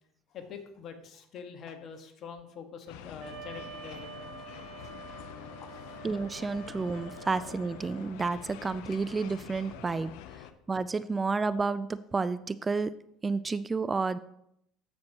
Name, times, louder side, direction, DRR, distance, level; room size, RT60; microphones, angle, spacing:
voice 1, 0.3-4.5 4.8-5.2 5.6-6.1, left 6 dB, 50° left, 6 dB, 1.5 m, -46 dB
sound 1, 2.9-10.5, left 10 dB, 75° left, 0.6 m, -46 dB
Wind instrument woodwind instrument, 3.2-8.1, right 7 dB, 50° right, 4.1 m, -47 dB
voice 2, 6.0-12.9 13.2-14.2, right 4 dB, 25° right, 15 dB, 0.4 m, -31 dB
14.0 x 6.1 x 2.9 m, 0.75 s
hypercardioid pair, 75°, 0 cm